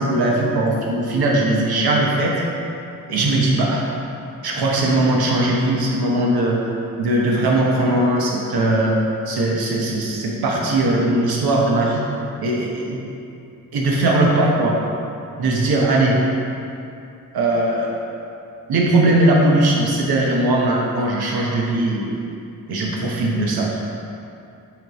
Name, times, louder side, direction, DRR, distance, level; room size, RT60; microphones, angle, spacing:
voice 1, 0.0-2.4 3.1-3.8 4.4-6.6 7.0-9.0 9.3-12.1 12.4-13.0 13.7-14.8 15.4-16.2 17.3-18.0 18.7-22.2 22.7-23.7, right 2 dB, 90° right, -2 dB, 0.9 m, -19 dB
7.9 x 3.2 x 4.0 m, 2.6 s
wide cardioid pair, 155°, 36 cm